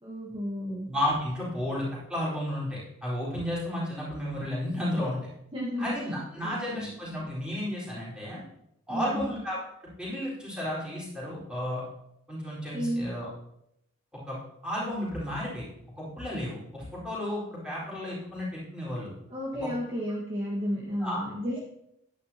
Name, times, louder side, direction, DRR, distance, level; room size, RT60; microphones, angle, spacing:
voice 1, 0.0-0.9 5.5-6.9 8.9-9.3 12.7-13.1 19.3-21.6, equal, 25° right, -5 dB, 1.5 m, -33 dB
voice 2, 0.9-5.2 5.8-8.4 8.9-11.8 12.3-13.3 14.3-14.4 14.6-15.6 16.0-19.1 19.6-19.7 21.0-21.2, left 1 dB, 5° right, -8 dB, 4.3 m, -33 dB
11.0 x 10.0 x 2.9 m, 0.80 s
head